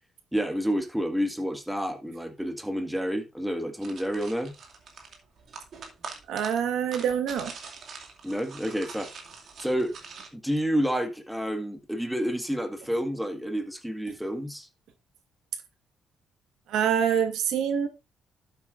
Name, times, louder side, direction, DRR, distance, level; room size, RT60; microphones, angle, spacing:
voice 1, 0.3-4.5 8.2-9.1 9.6-9.9 10.3-14.7, equal, 5° right, 1.8 m, -29 dB
sound 1, 3.8-10.3, right 5 dB, 60° right, 2.4 m, -44 dB
voice 2, 6.3-7.5 16.7-17.9, right 8 dB, 80° right, 1.5 m, -25 dB
12.0 x 7.8 x 2.6 m
cardioid pair, 90°, 0 cm